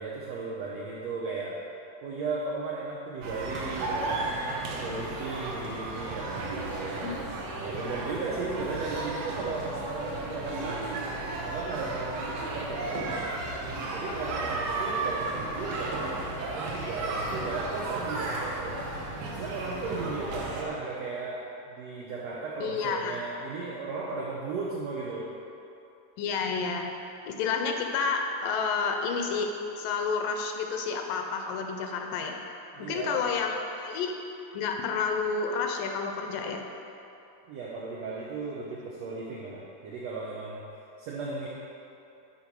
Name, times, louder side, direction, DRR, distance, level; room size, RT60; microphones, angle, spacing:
voice 1, 0.0-1.6 2.0-7.1 7.6-11.1 11.4-13.5 13.9-18.8 19.3-25.3 32.7-33.4 37.4-40.6 41.0-41.5, right 3 dB, 85° right, -4 dB, 1.5 m, -36 dB
sound 1, 3.2-20.7, right 2 dB, 70° right, 1.5 m, -34 dB
voice 2, 7.0-7.5 22.6-23.2 26.2-26.8 27.3-29.5 29.8-32.4 32.8-34.1 34.5-36.6, left 5 dB, 80° left, 3 dB, 2.2 m, -30 dB
11.0 x 4.4 x 4.5 m, 2.7 s
omnidirectional pair, 4.0 m